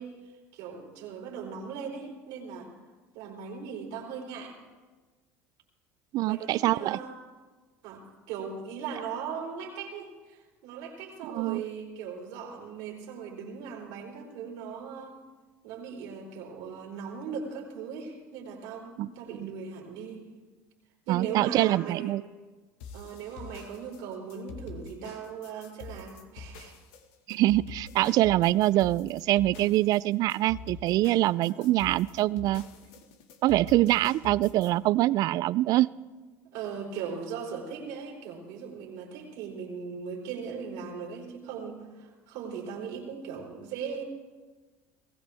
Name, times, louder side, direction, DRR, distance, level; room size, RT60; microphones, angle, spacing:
voice 1, 0.0-2.7 3.1-4.5 6.2-7.2 7.8-15.2 15.6-20.3 21.1-22.2 22.9-26.7 31.4-31.7 36.5-44.0, right 6 dB, 75° right, -2 dB, 4.0 m, -39 dB
voice 2, 6.1-7.0 11.2-11.6 19.0-19.1 21.1-22.2 27.3-32.6 33.4-35.9, right 16 dB, 55° right, 21 dB, 0.4 m, -24 dB
sound 1, 22.8-34.7, left 5 dB, 75° left, 1.6 m, -45 dB
20.0 x 16.5 x 3.5 m, 1.3 s
supercardioid pair, 90°, 7 cm